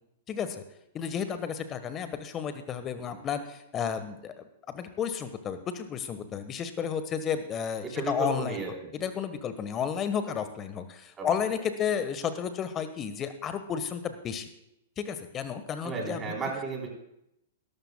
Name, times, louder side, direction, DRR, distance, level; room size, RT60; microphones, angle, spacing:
voice 1, 0.3-0.6 0.9-8.6 9.0-14.5 15.0-16.2, left 7 dB, 25° left, 10 dB, 1.3 m, -32 dB
voice 2, 7.8-8.9 11.2-11.3 15.8-16.9, right 3 dB, 20° right, -1 dB, 3.8 m, -34 dB
20.5 x 12.5 x 2.3 m, 0.82 s
figure-of-eight pair, 105°, 0 cm